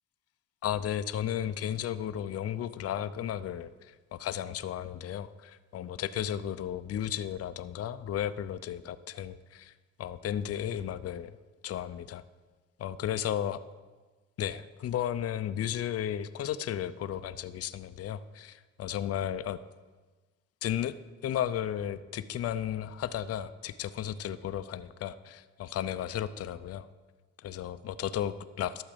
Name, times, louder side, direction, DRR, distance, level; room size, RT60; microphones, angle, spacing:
voice 1, 0.6-9.7 10.0-11.4 11.6-12.2 12.8-13.6 14.4-19.6 20.6-21.0 21.2-26.9 27.4-28.8, left 10 dB, 50° left, 13 dB, 0.5 m, -34 dB
12.0 x 7.3 x 5.1 m, 1.3 s
cardioid pair, 90°, 30 cm